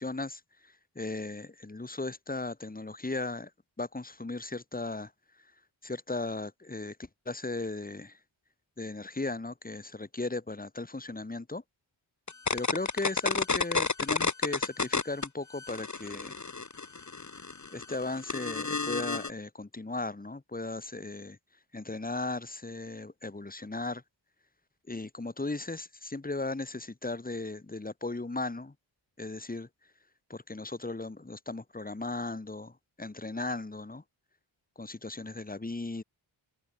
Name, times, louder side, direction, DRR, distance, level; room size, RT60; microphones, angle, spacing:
voice 1, 0.0-3.5 3.8-5.1 5.8-7.0 7.2-8.2 8.8-11.6 12.5-16.4 17.7-21.4 21.7-24.0 24.9-28.7 29.2-29.7 30.3-34.0 34.8-36.0, left 2 dB, 20° left, 1.7 m, -36 dB
sound 1, 12.3-15.3 15.6-19.3, left 4 dB, 35° left, 2.0 m, -31 dB
open air
cardioid pair, 65°, 48 cm